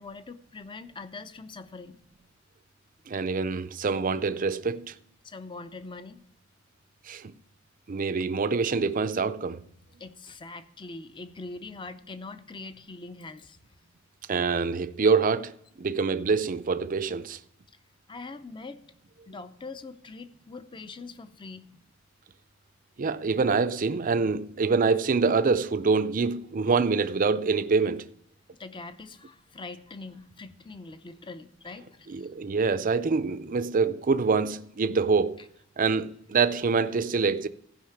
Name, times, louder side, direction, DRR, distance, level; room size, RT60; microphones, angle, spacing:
voice 1, 0.0-2.0 3.1-3.2 5.2-6.2 10.0-13.6 18.1-18.8 19.3-21.7 28.6-32.3, left 3 dB, 25° left, 0.6 m, -42 dB
voice 2, 3.1-5.0 7.1-7.3 7.9-9.6 14.3-17.4 23.0-28.1 32.1-35.5 35.8-37.5, right 4 dB, 45° right, 0.5 m, -25 dB
15.0 x 5.6 x 5.9 m
head